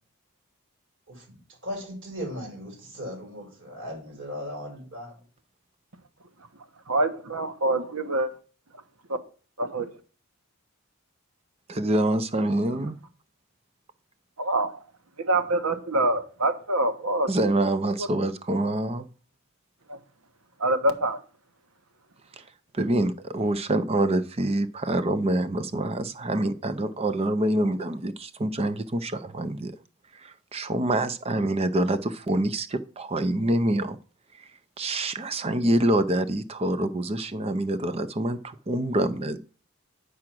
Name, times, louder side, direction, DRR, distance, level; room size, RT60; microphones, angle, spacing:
voice 1, 1.6-5.2, equal, 55° right, 5.8 m, -37 dB
voice 2, 6.9-8.3 9.6-9.8 14.4-14.7 15.3-17.3 19.9-20.0 20.6-21.2, right 2 dB, 80° right, 1.3 m, -25 dB
voice 3, 11.7-13.0 17.3-19.1 22.4-22.5 22.7-29.7 30.1-34.0 34.4-34.5 34.8-39.4, right 1 dB, 25° right, 0.5 m, -26 dB
8.6 x 4.8 x 6.1 m
head